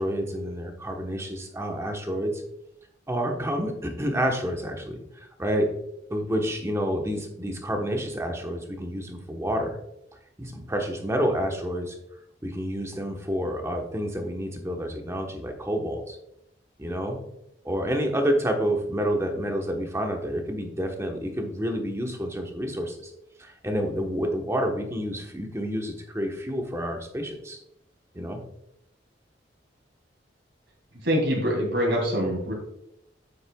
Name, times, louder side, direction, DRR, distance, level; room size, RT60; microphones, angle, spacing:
voice 1, 0.0-2.4 3.1-5.7 6.1-9.8 10.4-12.0 12.4-16.2 16.8-17.2 17.6-23.1 23.4-27.6 28.1-28.4, equal, 15° right, 2 dB, 1.1 m, -29 dB
voice 2, 31.0-32.5, equal, 65° right, -2 dB, 2.7 m, -24 dB
8.8 x 8.1 x 2.3 m, 0.79 s
head